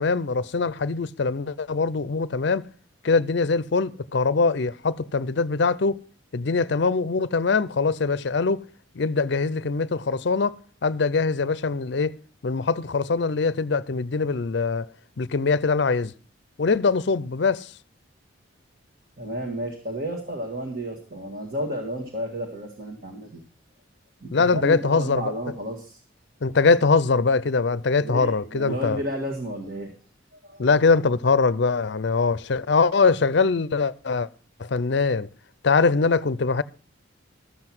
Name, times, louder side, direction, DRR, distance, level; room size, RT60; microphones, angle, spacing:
voice 1, 0.0-2.7 3.0-6.0 6.3-8.6 9.0-12.1 12.4-14.9 15.2-16.1 16.6-17.7 24.3-25.3 26.4-29.0 30.6-34.3 34.6-35.3 35.6-36.6, left 4 dB, 55° left, 0.5 m, -22 dB
voice 2, 19.2-23.4 24.2-26.0 28.0-29.9 30.4-30.7, equal, 45° right, 1.8 m, -32 dB
13.0 x 7.8 x 6.0 m
head